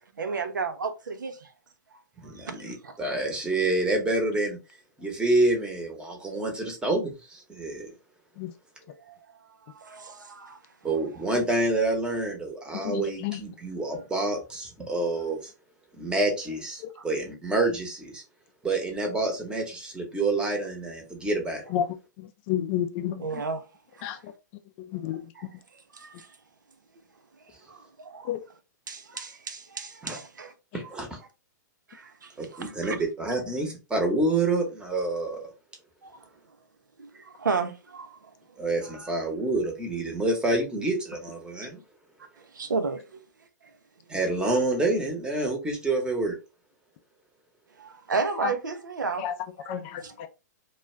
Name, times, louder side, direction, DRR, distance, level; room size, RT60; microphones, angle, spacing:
voice 1, 0.2-1.5 2.4-3.0 9.1-9.4 9.7-10.6 10.9-11.0 17.0-17.1 23.2-23.6 23.9-24.2 25.4-25.5 25.9-26.3 27.7-28.4 28.9-30.5 31.9-33.0 36.0-36.3 37.0-38.3 38.9-39.1 42.4-43.3 44.1-44.3 47.8-49.3 49.6-50.3, right 4 dB, 90° right, 0.5 m, -33 dB
voice 2, 2.2-4.6 5.0-7.9 10.8-15.5 16.0-18.2 18.6-21.6 30.0-30.2 30.7-31.2 32.4-35.4 38.6-41.8 44.1-46.4, right 2 dB, 10° right, 0.8 m, -28 dB
voice 3, 12.8-13.4 21.7-21.9 22.2-23.2 24.0-24.2 24.9-25.2 28.3-28.4 48.4-48.5 49.2-49.3 49.7-50.3, left 10 dB, 40° left, 0.4 m, -30 dB
2.3 x 2.2 x 3.1 m
hypercardioid pair, 120°, 10 cm